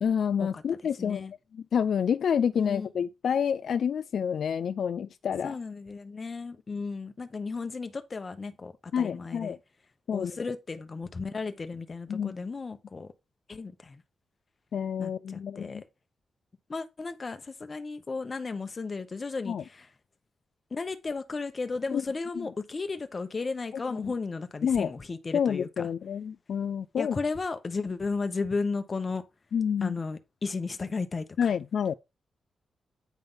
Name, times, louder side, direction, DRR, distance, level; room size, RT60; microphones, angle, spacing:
voice 1, 0.0-1.3 1.5-5.6 8.9-9.6 10.1-10.4 12.1-12.3 14.7-15.8 19.5-19.6 21.9-22.0 22.4-22.5 24.0-24.1 24.6-24.9 25.3-27.2 29.5-30.0 31.4-31.9, left 7 dB, 65° left, 0.3 m, -28 dB
voice 2, 1.0-1.3 2.5-2.9 5.4-9.6 10.1-13.1 13.5-14.0 15.0-15.8 16.7-19.9 20.7-25.9 27.0-29.2 29.8-31.5, left 4 dB, 30° left, 0.9 m, -34 dB
9.2 x 3.5 x 5.5 m
wide cardioid pair, 145°, 0 cm